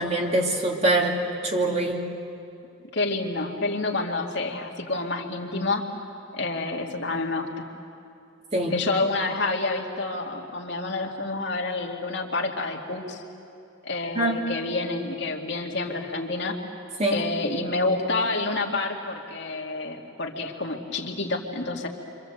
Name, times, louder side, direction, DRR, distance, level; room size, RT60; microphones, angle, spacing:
voice 1, 0.0-2.0 8.5-8.7 14.1-14.4 17.0-17.2, right 1 dB, 30° right, 0 dB, 2.8 m, -24 dB
voice 2, 2.9-5.8 6.3-7.6 8.7-13.2 13.8-16.6 17.1-21.9, left 3 dB, 60° left, 1 dB, 2.4 m, -28 dB
28.5 x 25.5 x 8.0 m, 2.7 s
head